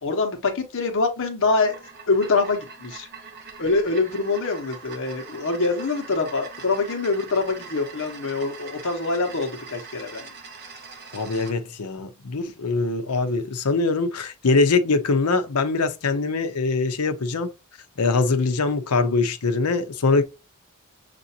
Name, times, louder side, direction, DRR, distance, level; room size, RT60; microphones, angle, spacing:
voice 1, 0.0-1.8 2.1-3.1 3.6-10.3, left 3 dB, 60° left, 1.0 m, -24 dB
sound 1, 1.4-11.6, right 5 dB, 45° right, 1.1 m, -42 dB
voice 2, 11.1-17.5 18.0-20.2, left 3 dB, 90° left, 0.7 m, -23 dB
6.7 x 2.6 x 2.7 m
head